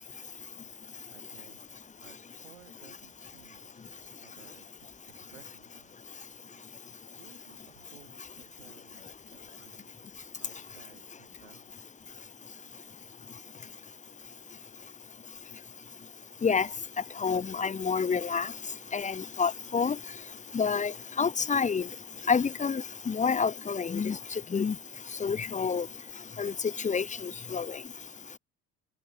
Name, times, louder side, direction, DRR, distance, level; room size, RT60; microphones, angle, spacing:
voice 1, 1.1-3.9 4.2-4.7 5.1-6.9 7.1-10.1 10.4-11.8, right 11 dB, 85° right, 7.5 m, -59 dB
voice 2, 17.2-18.5 18.9-20.0 20.5-21.9 22.3-24.2 24.5-24.7 25.2-25.9 26.4-26.5 26.8-27.7, left 5 dB, 20° left, 0.8 m, -28 dB
hypercardioid pair, 60°, 37 cm